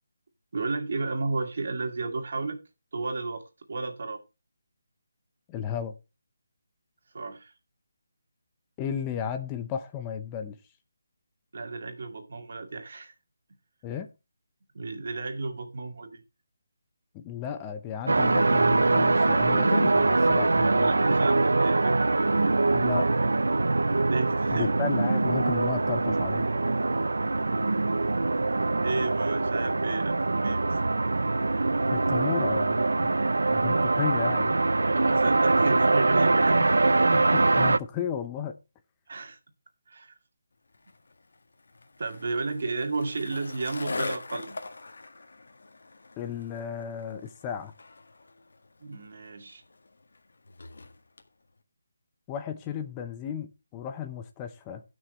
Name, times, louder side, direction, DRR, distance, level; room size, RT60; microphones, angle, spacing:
voice 1, 0.5-2.6 2.9-4.2 7.1-7.5 11.5-13.1 14.7-16.2 20.6-22.0 24.1-24.7 28.8-30.6 34.9-37.1 39.1-39.4 39.9-40.1 42.0-44.5 48.8-49.6, right 3 dB, 60° right, 2.3 m, -33 dB
voice 2, 5.5-5.9 8.8-10.6 13.8-14.1 17.1-20.9 22.7-23.2 24.5-26.5 31.9-32.9 33.5-34.6 37.1-38.6 46.2-47.7 52.3-54.8, left 8 dB, 15° left, 0.7 m, -34 dB
sound 1, 18.1-37.8, right 3 dB, 90° right, 0.5 m, -23 dB
Skateboard, 40.7-51.3, left 3 dB, 75° left, 1.8 m, -42 dB
18.0 x 6.3 x 3.1 m
figure-of-eight pair, 165°, 0 cm